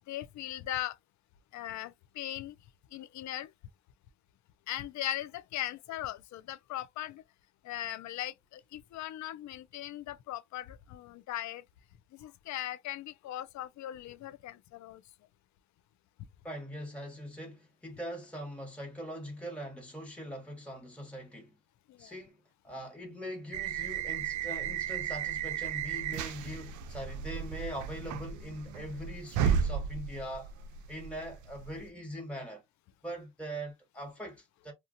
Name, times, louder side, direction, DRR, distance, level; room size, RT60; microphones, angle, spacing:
voice 1, 0.1-0.9 1.5-2.5 2.9-3.5 4.7-7.2 7.6-11.6 12.2-15.0, left 13 dB, 70° left, 0.5 m, -39 dB
voice 2, 16.4-21.5 22.0-30.5 30.9-32.6 33.0-34.7, equal, 5° left, 1.2 m, -42 dB
sound 1, 23.5-31.9, right 8 dB, 75° right, 0.5 m, -34 dB
2.8 x 2.3 x 2.6 m
cardioid pair, 90°, 30 cm